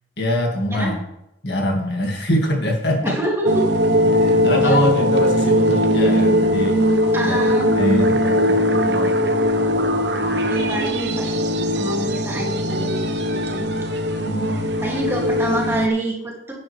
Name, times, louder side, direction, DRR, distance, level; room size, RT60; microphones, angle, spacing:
voice 1, 0.2-1.0 1.4-3.2 4.1-6.8 7.3-7.4 7.8-9.2 14.2-14.7, left 1 dB, 60° left, 1 dB, 2.1 m, -23 dB
voice 2, 3.0-3.7 4.6-4.8 7.1-7.7 10.5-11.4 11.7-13.7 14.8-16.5, right 1 dB, 15° right, -3 dB, 2.4 m, -26 dB
sound 1, 3.5-15.9, equal, 65° right, 1.1 m, -20 dB
11.0 x 9.5 x 3.4 m, 0.84 s
head